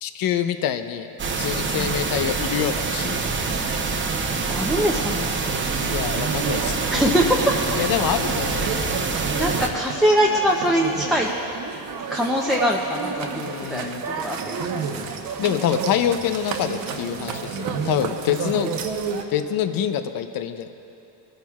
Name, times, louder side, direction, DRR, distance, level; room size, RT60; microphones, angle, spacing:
voice 1, 0.0-1.1 1.4-3.2 5.9-6.8 7.8-8.9 13.3-14.0 15.4-18.7 19.3-20.7, left 9 dB, 60° left, 9 dB, 0.7 m, -26 dB
sound 1, 1.2-9.7, right 4 dB, 30° right, 0.8 m, -26 dB
voice 2, 4.5-5.6 6.9-7.8 8.5-9.0 9.3-11.3 12.1-15.3 15.6-15.7, equal, ahead, -2 dB, 0.6 m, -23 dB
sound 2, 5.5-19.2, right 5 dB, 65° right, 1.0 m, -31 dB
20.5 x 10.5 x 2.4 m, 2.8 s
cardioid pair, 120°, 38 cm